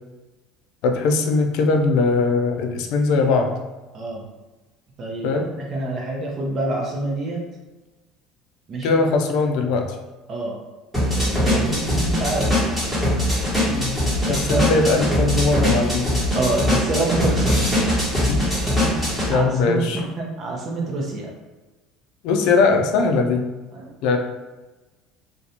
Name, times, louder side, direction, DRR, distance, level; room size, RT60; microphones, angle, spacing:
voice 1, 0.8-3.5 5.2-5.5 8.8-10.0 13.7-14.0 14.3-16.1 18.3-18.4 19.2-20.0 22.2-23.5 24.0-24.2, left 3 dB, 70° left, 4 dB, 0.4 m, -20 dB
voice 2, 5.0-7.5 8.7-9.0 10.3-10.6 11.1-12.5 14.2-14.7 16.3-17.6 18.8-21.3 23.7-23.9, right 2 dB, 45° right, -2 dB, 0.6 m, -27 dB
sound 1, 10.9-19.3, left 1 dB, 5° right, 1.1 m, -21 dB
2.5 x 2.2 x 2.7 m, 1.2 s
supercardioid pair, 110°, 0 cm